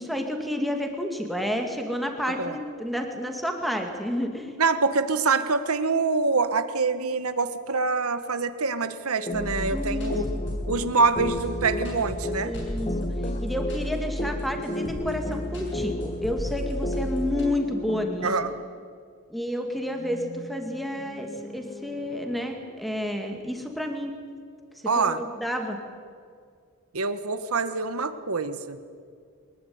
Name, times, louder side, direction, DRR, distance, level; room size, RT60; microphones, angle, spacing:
voice 1, 0.0-4.5 9.7-10.2 12.4-12.9 13.4-18.3 19.3-24.1 25.0-25.8, left 1 dB, ahead, 4 dB, 2.3 m, -30 dB
voice 2, 4.6-10.3 10.7-12.5 18.2-18.5 24.8-25.2 26.9-28.8, right 4 dB, 85° right, 10 dB, 1.5 m, -25 dB
sound 1, 9.3-17.4, equal, 55° left, 7.5 m, -33 dB
sound 2, 9.3-18.5, left 1 dB, 30° left, 1.1 m, -34 dB
sound 3, 19.7-23.8, left 1 dB, 75° left, 3.8 m, -45 dB
23.5 x 20.5 x 9.6 m, 2.1 s
head